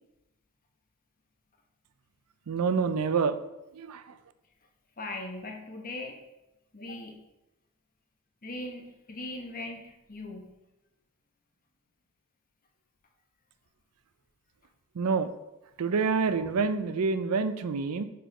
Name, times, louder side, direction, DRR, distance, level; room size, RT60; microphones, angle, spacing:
voice 1, 2.5-3.4 3.7-4.0 15.0-15.3 15.8-18.0, right 5 dB, 85° right, 12 dB, 0.4 m, -27 dB
voice 2, 5.0-6.2 6.7-7.2 8.4-10.5, left 2 dB, 40° left, 2 dB, 1.0 m, -39 dB
5.1 x 4.5 x 4.9 m, 0.93 s
head